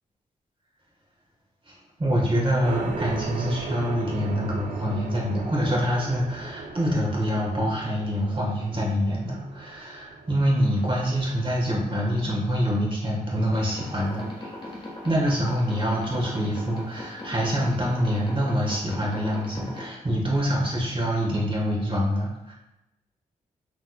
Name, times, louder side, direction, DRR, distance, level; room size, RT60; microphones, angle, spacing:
voice 1, 1.7-14.5 15.0-22.5, equal, 35° right, -3 dB, 1.4 m, -25 dB
sound 1, 2.6-12.8, right 4 dB, 60° right, 0.5 m, -38 dB
sound 2, 13.4-19.9, left 1 dB, 30° left, 1.3 m, -39 dB
3.6 x 3.1 x 2.3 m, 0.90 s
cardioid pair, 55°, 15 cm